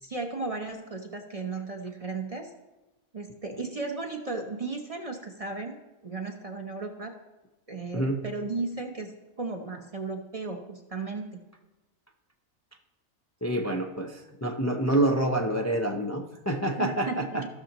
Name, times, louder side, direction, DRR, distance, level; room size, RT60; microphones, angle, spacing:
voice 1, 0.0-2.5 3.1-5.8 6.0-7.1 7.7-11.3 16.8-17.5, right 3 dB, 35° right, 3 dB, 0.7 m, -35 dB
voice 2, 13.4-17.5, right 1 dB, 25° left, 2 dB, 0.3 m, -27 dB
16.5 x 6.3 x 2.9 m, 1.1 s
omnidirectional pair, 1.5 m